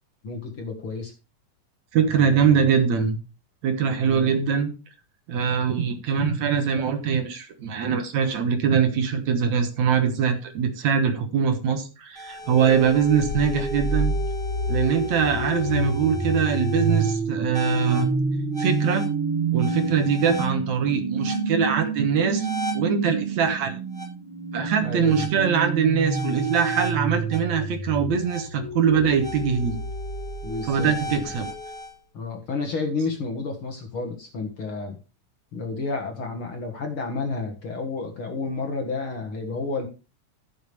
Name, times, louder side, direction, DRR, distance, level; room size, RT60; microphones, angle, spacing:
voice 1, 0.2-1.1 2.1-2.7 4.0-4.3 24.8-25.4 30.4-31.2 32.1-35.0 35.5-39.9, left 3 dB, 45° left, 3 dB, 2.1 m, -31 dB
voice 2, 1.9-3.2 3.6-4.7 5.3-14.1 14.7-18.1 18.6-19.1 19.5-22.5 22.7-23.8 24.5-29.8 30.7-31.5, right 7 dB, 65° right, 7 dB, 2.5 m, -22 dB
sound 1, 12.1-31.9, right 3 dB, ahead, 7.5 m, -28 dB
15.0 x 7.1 x 3.4 m, 0.31 s
omnidirectional pair, 3.8 m